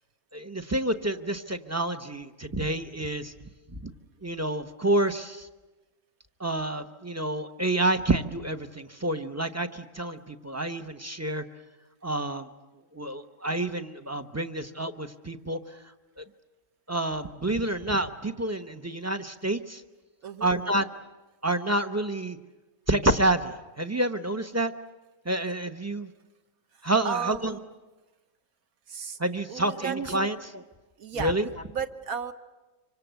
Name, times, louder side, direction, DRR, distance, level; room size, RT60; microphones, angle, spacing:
voice 1, 0.3-3.3 3.7-3.9 4.2-5.5 6.4-11.4 12.0-12.5 12.9-15.8 16.2-16.3 16.9-19.8 20.4-20.9 21.4-22.4 22.9-24.7 25.2-26.1 26.8-27.5 29.2-30.6 31.2-31.4, right 1 dB, 15° right, 8 dB, 0.6 m, -28 dB
voice 2, 26.7-27.8 28.9-29.2 29.5-30.3 31.0-31.3 31.7-32.3, right 6 dB, 60° right, 9 dB, 1.6 m, -34 dB
26.0 x 25.0 x 8.1 m, 1.2 s
omnidirectional pair, 1.8 m